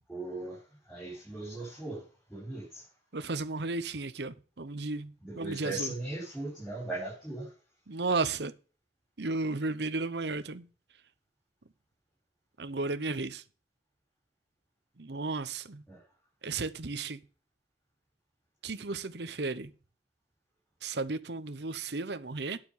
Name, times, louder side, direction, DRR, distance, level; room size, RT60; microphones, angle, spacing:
voice 1, 0.1-0.6 0.9-2.0 2.3-2.9 5.2-7.5 15.9-16.0, right 2 dB, 5° left, 5.0 m, -38 dB
voice 2, 3.1-5.9 7.9-8.5 9.2-10.7 12.6-13.4 15.0-15.8 16.4-17.2 18.6-19.7 20.8-22.6, right 3 dB, 65° right, 0.9 m, -34 dB
9.6 x 6.9 x 5.6 m
head